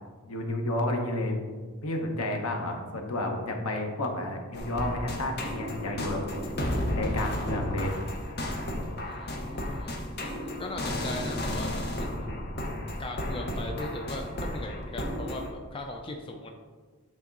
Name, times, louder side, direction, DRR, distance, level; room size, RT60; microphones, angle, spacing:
voice 1, 0.2-1.5 1.8-6.5 7.0-7.9, left 1 dB, 80° left, 3 dB, 1.0 m, -31 dB
sound 1, 4.5-15.5, left 1 dB, 45° left, 0.9 m, -33 dB
voice 2, 9.1-9.9 10.3-12.3 13.0-16.5, left 1 dB, 25° left, 2 dB, 0.4 m, -38 dB
8.5 x 3.5 x 4.0 m, 1.4 s
head